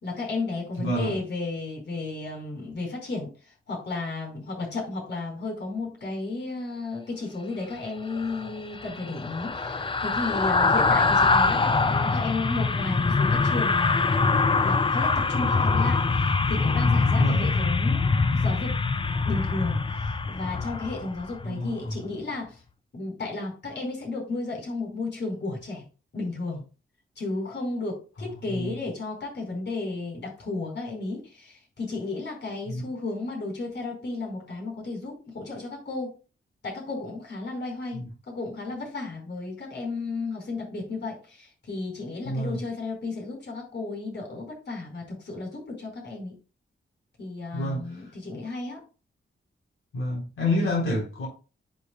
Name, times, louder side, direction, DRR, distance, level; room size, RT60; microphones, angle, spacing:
voice 1, 0.0-3.3 3.7-14.1 14.6-18.8 19.2-22.6 22.9-25.8 26.1-26.6 27.2-36.1 36.6-38.0 38.3-46.3 47.2-48.8, left 3 dB, 60° left, 4.8 m, -33 dB
voice 2, 0.8-1.2 17.2-17.5 21.4-22.0 28.5-28.7 32.7-32.8 37.9-38.1 42.3-42.6 47.5-47.9 49.9-51.3, left 1 dB, 85° left, 3.9 m, -28 dB
sound 1, 8.1-21.5 21.8-22.0, left 4 dB, 25° left, 0.6 m, -24 dB
11.0 x 6.5 x 2.3 m
wide cardioid pair, 125°, 21 cm